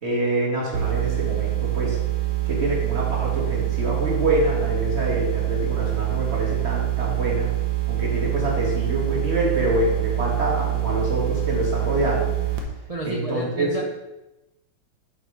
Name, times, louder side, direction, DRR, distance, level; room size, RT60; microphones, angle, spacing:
voice 1, 0.0-2.0 2.5-7.5 7.9-12.3 13.0-13.7, right 1 dB, 35° right, -3 dB, 2.4 m, -26 dB
sound 1, 0.7-12.6, right 17 dB, 75° right, 1.8 m, -25 dB
voice 2, 12.9-13.8, right 2 dB, 55° right, -1 dB, 0.4 m, -30 dB
8.3 x 4.9 x 4.9 m, 0.99 s
omnidirectional pair, 2.1 m